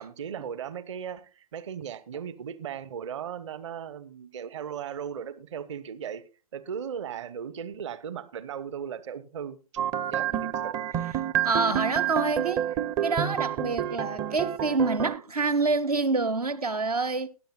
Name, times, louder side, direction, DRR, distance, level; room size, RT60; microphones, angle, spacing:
voice 1, 0.0-6.2 6.5-9.6 10.1-10.8, right 8 dB, 50° right, 1.0 m, -37 dB
sound 1, 9.8-15.2, right 10 dB, 20° right, 0.5 m, -29 dB
voice 2, 11.4-12.7 13.0-17.3, right 4 dB, 80° right, 1.0 m, -27 dB
20.0 x 10.5 x 2.3 m
figure-of-eight pair, 115°, 20 cm